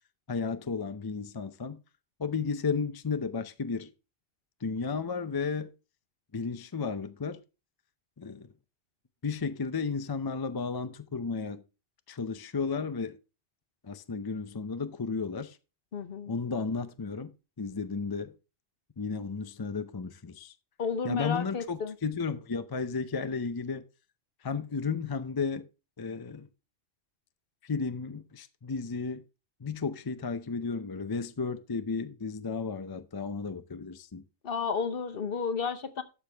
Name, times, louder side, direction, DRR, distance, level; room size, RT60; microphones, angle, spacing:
voice 1, 0.3-1.8 2.2-3.9 4.6-5.7 6.3-7.4 8.2-8.5 9.2-11.6 12.1-13.2 13.8-15.6 16.3-17.3 17.6-18.3 19.0-20.5 21.0-23.8 24.4-25.7 26.0-26.5 27.6-29.2 29.6-34.2, left 5 dB, 30° left, 0.5 m, -33 dB
voice 2, 15.9-16.3 20.8-21.9 34.4-36.0, left 6 dB, 55° left, 1.1 m, -32 dB
12.0 x 6.9 x 3.4 m
omnidirectional pair, 1.2 m